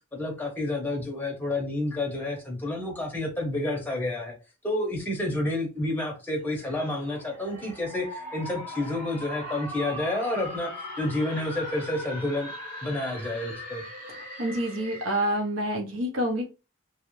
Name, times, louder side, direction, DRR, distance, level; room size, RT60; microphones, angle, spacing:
voice 1, 0.1-4.3 4.6-12.5 12.8-13.8, left 1 dB, 10° left, 0.7 m, -30 dB
sound 1, 6.5-15.4, left 1 dB, 40° right, 1.2 m, -40 dB
voice 2, 14.4-16.5, right 1 dB, 80° right, 0.7 m, -27 dB
2.4 x 2.0 x 2.9 m
head